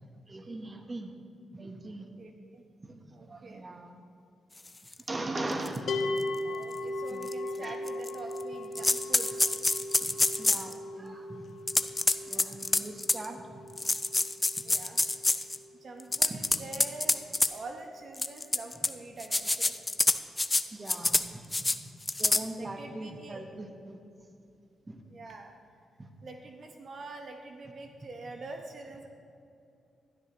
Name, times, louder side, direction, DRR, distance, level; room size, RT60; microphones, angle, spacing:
voice 1, 0.3-1.1 1.5-2.1 2.8-3.0 3.3-3.9 5.1-6.1 6.4-7.3 7.6-7.8 8.8-8.9 10.0-11.5 12.3-13.6 16.3-16.5 20.6-21.9 22.2-24.0 24.9-25.0 26.0-26.1, right 2 dB, 30° right, 5 dB, 1.0 m, -40 dB
voice 2, 2.2-2.6 3.1-3.6 6.5-9.5 12.3-12.6 14.6-15.0 15.8-17.2 17.5-19.8 22.6-23.4 25.0-25.5 26.2-29.1, right 3 dB, 55° right, 4 dB, 0.9 m, -45 dB
sound 1, 4.9-5.0 5.6-5.8 6.2-6.3 7.2-7.3 7.9-8.4 8.7-10.7 11.7-13.2 13.8-15.6 16.0-17.5 18.2-18.9 19.2-20.6 20.9-21.2 21.5-21.8 22.1-22.4, left 2 dB, 20° left, 0.5 m, -26 dB
sound 2, 5.9-17.0, left 2 dB, 65° left, 0.8 m, -38 dB
13.0 x 11.5 x 3.0 m, 2.5 s
cardioid pair, 65°, 0 cm